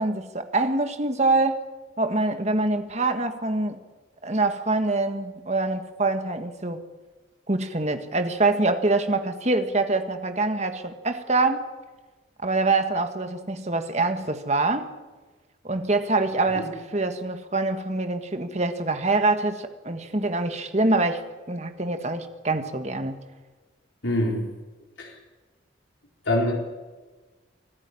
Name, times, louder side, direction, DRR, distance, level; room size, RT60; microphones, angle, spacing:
voice 1, 0.0-1.6 2.0-3.8 4.2-6.8 7.5-11.6 12.4-14.9 15.6-21.2 21.5-23.2, right 2 dB, 35° right, 8 dB, 1.6 m, -25 dB
voice 2, 24.0-24.5 25.0-25.1 26.2-26.5, left 1 dB, 75° left, 0 dB, 4.4 m, -24 dB
25.0 x 13.5 x 9.9 m, 1.3 s
head